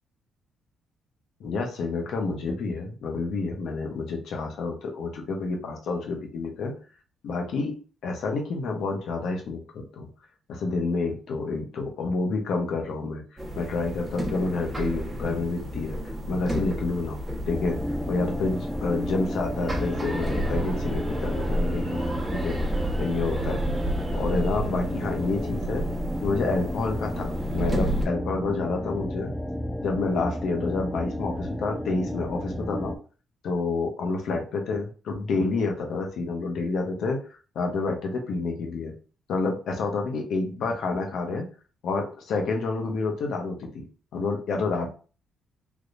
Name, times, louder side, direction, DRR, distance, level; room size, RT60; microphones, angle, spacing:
voice 1, 1.4-6.8 7.2-7.8 8.0-10.1 10.5-13.2 13.6-17.2 17.5-17.8 18.1-22.6 23.0-23.6 24.1-25.9 26.2-29.3 29.8-32.9 33.4-37.2 37.5-38.9 39.3-41.5 41.8-43.8 44.1-44.9, left 3 dB, 70° left, 2 dB, 0.9 m, -29 dB
sound 1, 13.4-28.0, right 1 dB, 15° right, 1.1 m, -31 dB
sound 2, 17.5-33.0, equal, 5° left, 0.4 m, -33 dB
3.5 x 2.9 x 2.5 m, 0.37 s
cardioid pair, 90°, 0 cm